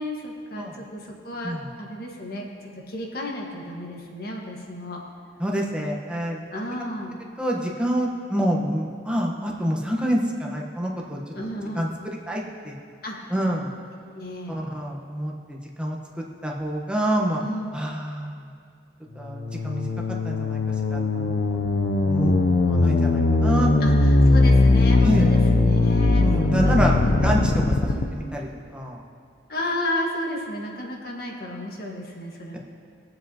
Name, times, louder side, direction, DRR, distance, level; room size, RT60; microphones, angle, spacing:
voice 1, 0.0-2.5 2.9-5.0 6.5-7.1 11.4-11.8 13.0-13.3 14.1-14.6 17.4-17.7 23.8-26.3 26.6-27.1 27.8-28.0 29.5-32.6, left 1 dB, 60° left, -1 dB, 1.5 m, -32 dB
voice 2, 5.4-6.4 7.4-11.2 11.7-12.7 13.3-13.7 14.5-17.4 17.7-18.5 19.1-19.9 20.2-20.6 20.9-21.6 22.0-23.9 25.0-25.3 26.2-27.8 28.3-29.0, equal, 5° right, -2 dB, 1.1 m, -27 dB
sound 1, 19.3-28.0, left 2 dB, 85° left, 0.6 m, -20 dB
21.5 x 7.7 x 2.9 m, 2.3 s
head